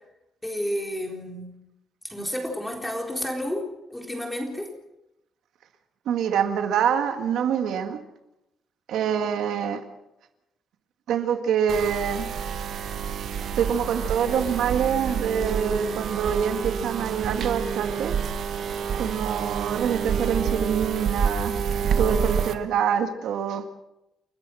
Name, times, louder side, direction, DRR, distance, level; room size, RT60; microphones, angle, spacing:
voice 1, 0.4-1.5 2.1-3.6 3.9-4.7, equal, 5° left, 2 dB, 4.0 m, -30 dB
voice 2, 6.1-8.0 8.9-9.8 11.1-12.3 13.6-18.1 19.0-21.5 22.0-23.7, right 8 dB, 75° right, 6 dB, 1.9 m, -25 dB
sound 1, 11.7-22.5, right 7 dB, 55° right, 1.3 m, -28 dB
30.0 x 14.0 x 6.3 m, 0.89 s
cardioid pair, 155°, 0 cm